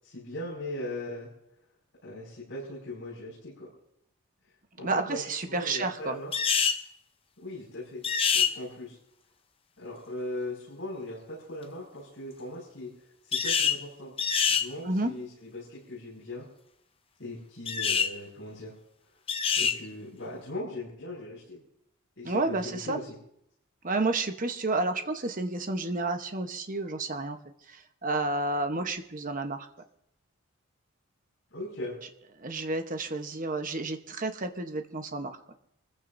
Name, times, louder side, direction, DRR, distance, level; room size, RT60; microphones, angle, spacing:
voice 1, 0.0-1.3 2.0-3.7 4.8-6.3 7.4-8.0 8.3-9.0 9.8-14.1 14.5-16.5 17.2-18.7 19.6-21.6 22.2-23.1 31.5-32.0, left 1 dB, 55° left, -6 dB, 5.8 m, -39 dB
voice 2, 4.8-6.2 14.8-15.1 22.2-23.0 23.8-27.4 27.7-29.7 32.4-35.3, right 2 dB, 35° right, 6 dB, 1.0 m, -30 dB
sound 1, 6.3-6.8 8.0-8.5 13.3-13.8 14.2-14.7 17.7-18.1 19.3-19.8, left 6 dB, 25° left, 0.7 m, -25 dB
26.5 x 15.0 x 2.7 m, 0.78 s
head